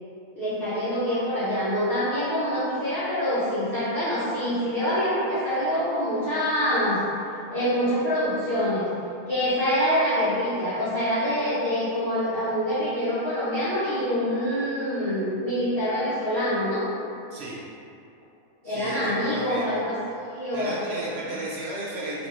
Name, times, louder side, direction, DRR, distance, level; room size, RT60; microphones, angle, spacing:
voice 1, 0.3-7.0 7.5-8.9 9.3-16.9 18.6-20.0 20.3-21.2, equal, 40° left, -13 dB, 1.1 m, -25 dB
voice 2, 18.6-19.7 20.5-22.3, right 1 dB, 70° right, -5 dB, 0.6 m, -34 dB
4.1 x 3.0 x 3.0 m, 2.6 s
omnidirectional pair, 1.7 m